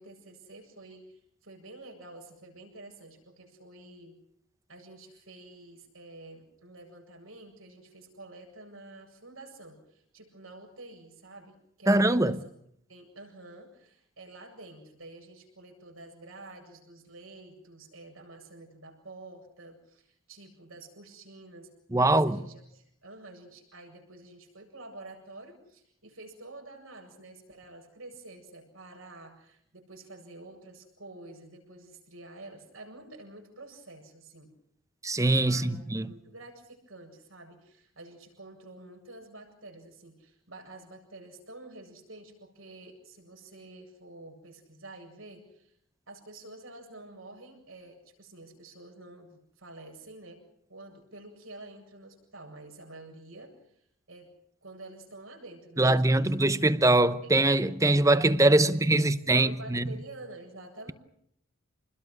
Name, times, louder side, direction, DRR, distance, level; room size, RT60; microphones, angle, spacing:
voice 1, 0.0-4.1 4.7-12.5 12.9-21.7 21.9-34.5 35.4-35.8 36.0-45.7 46.1-50.4 50.7-53.6 54.1-54.3 54.6-56.3 57.2-57.3 58.6-60.9, right 2 dB, 80° right, 7.8 m, -49 dB
voice 2, 11.9-12.4 21.9-22.4 35.0-36.1 55.8-59.9, right 2 dB, 15° right, 0.8 m, -23 dB
28.0 x 21.0 x 6.4 m
head